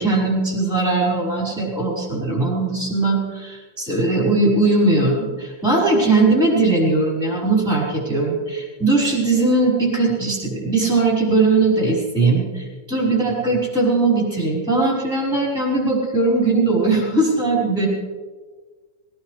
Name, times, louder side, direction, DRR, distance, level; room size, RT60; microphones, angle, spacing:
voice 1, 0.0-17.9, right 3 dB, ahead, -4 dB, 5.0 m, -19 dB
21.5 x 18.5 x 3.4 m, 1.4 s
omnidirectional pair, 4.1 m